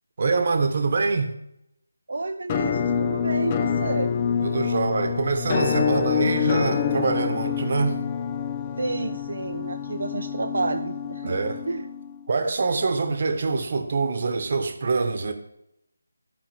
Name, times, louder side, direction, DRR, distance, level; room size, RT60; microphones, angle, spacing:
voice 1, 0.2-1.4 4.4-8.0 11.2-11.6 12.3-15.3, right 4 dB, 50° right, 1.1 m, -25 dB
voice 2, 2.1-4.1 8.8-11.3 11.7-11.9, right 2 dB, 70° right, 0.6 m, -30 dB
Musical instrument, 2.5-12.3, left 7 dB, 25° left, 0.5 m, -26 dB
14.0 x 4.9 x 3.5 m
figure-of-eight pair, 160°, 0 cm